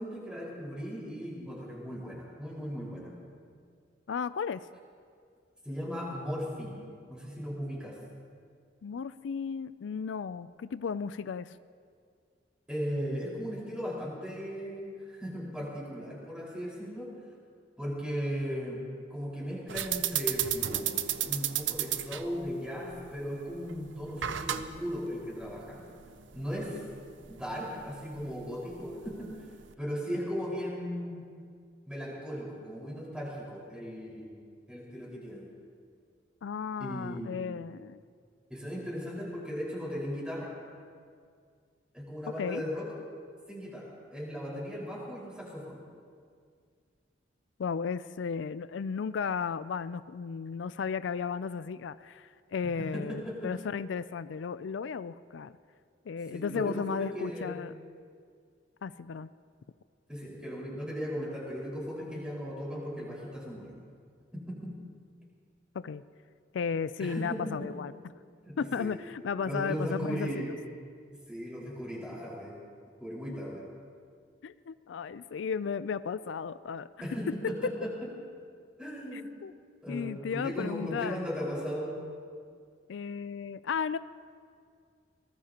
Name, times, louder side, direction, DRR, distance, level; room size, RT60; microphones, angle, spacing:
voice 1, 0.0-3.1 5.6-6.8 7.1-8.0 12.7-17.1 17.8-18.8 19.1-25.8 26.3-26.8 27.3-29.4 29.8-31.2 31.8-34.3 34.7-35.5 36.8-37.5 38.5-40.5 41.9-42.9 43.5-45.8 52.8-53.5 56.3-57.6 60.1-63.7 64.3-64.7 67.0-67.7 68.4-68.9 69.4-70.6 71.3-72.6 73.0-73.6 77.0-77.9 78.8-79.3 79.8-81.9, equal, 5° right, -5 dB, 5.0 m, -37 dB
voice 2, 4.1-4.7 8.8-11.6 36.4-38.0 42.4-42.6 47.6-55.6 56.1-57.7 58.8-59.3 65.7-66.0 66.5-67.9 68.6-70.3 74.4-76.9 77.4-77.5 79.1-79.5 79.9-81.3 82.9-84.0, left 6 dB, 85° left, 15 dB, 0.4 m, -34 dB
sound 1, 19.7-29.7, right 11 dB, 85° right, 0.7 m, -35 dB
24.0 x 19.5 x 2.9 m, 2.2 s
head